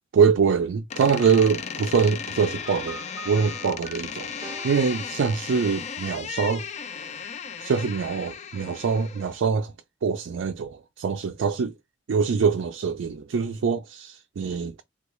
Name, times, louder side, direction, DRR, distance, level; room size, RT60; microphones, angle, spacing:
voice 1, 0.1-3.0 3.3-6.7 7.6-9.7 10.0-11.7 12.1-14.8, right 6 dB, 80° right, 0.4 m, -24 dB
Door, 0.9-9.4, left 7 dB, 35° left, 0.3 m, -36 dB
sound 1, 2.7-6.1, right 4 dB, 20° right, 0.6 m, -45 dB
3.6 x 2.3 x 3.0 m
head